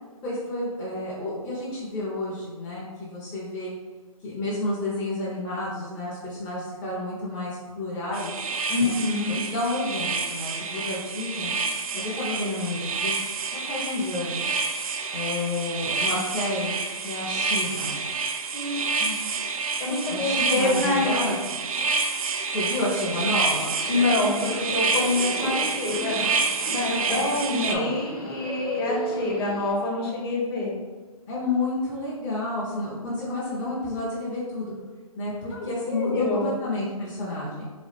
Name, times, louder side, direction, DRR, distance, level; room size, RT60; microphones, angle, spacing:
voice 1, 0.2-3.7 4.2-8.4 8.8-9.0 9.3-11.5 11.9-14.5 15.1-16.8 17.0-18.0 20.1-21.4 22.5-23.8 27.1-27.9 31.3-34.7 35.2-37.7, left 2 dB, 15° left, -9 dB, 0.6 m, -30 dB
sound 1, 8.1-27.8, right 4 dB, 65° right, 0.4 m, -28 dB
voice 2, 8.7-9.4 18.5-19.1 19.8-21.2 23.9-26.4 26.7-30.8 35.5-36.6, left 2 dB, 40° left, -3 dB, 1.1 m, -27 dB
Subway metro underground, 23.1-29.7, equal, 90° left, 0.9 m, -36 dB
3.8 x 2.3 x 3.2 m, 1.4 s
hypercardioid pair, 145°, 19 cm